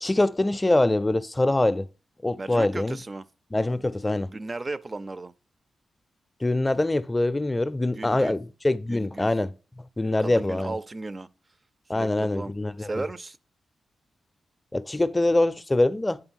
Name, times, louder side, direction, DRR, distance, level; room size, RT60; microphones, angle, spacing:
voice 1, 0.0-1.9 2.2-3.0 3.5-4.3 6.4-9.5 10.0-10.8 11.9-13.0 14.7-16.2, left 2 dB, 20° left, 0.5 m, -24 dB
voice 2, 2.4-3.3 4.3-5.3 7.9-8.4 8.9-9.3 10.0-11.3 11.9-12.5 12.8-13.4, right 2 dB, 35° right, 0.4 m, -35 dB
8.9 x 3.5 x 6.3 m
cardioid pair, 75°, 0 cm